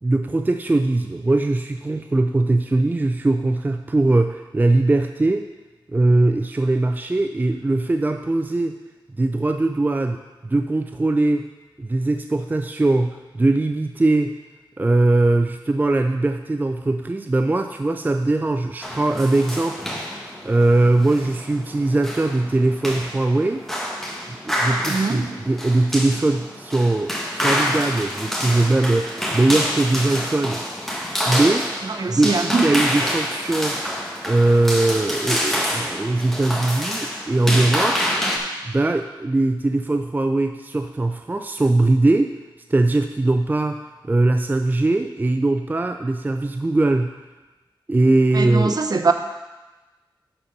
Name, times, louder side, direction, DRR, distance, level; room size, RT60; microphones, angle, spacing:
voice 1, 0.0-5.5 5.9-8.8 9.2-11.5 11.8-14.4 14.8-23.7 24.4-30.9 31.2-31.7 32.1-33.8 34.3-38.1 38.6-42.4 42.7-47.1 47.9-48.8, right 2 dB, 20° right, 6 dB, 0.4 m, -20 dB
sound 1, 18.8-38.4, equal, 5° left, 1.5 m, -27 dB
voice 2, 24.8-25.2 31.8-32.7 48.3-49.1, right 3 dB, 50° right, 7 dB, 0.8 m, -22 dB
11.0 x 4.2 x 5.3 m, 1.2 s
cardioid pair, 65°, 9 cm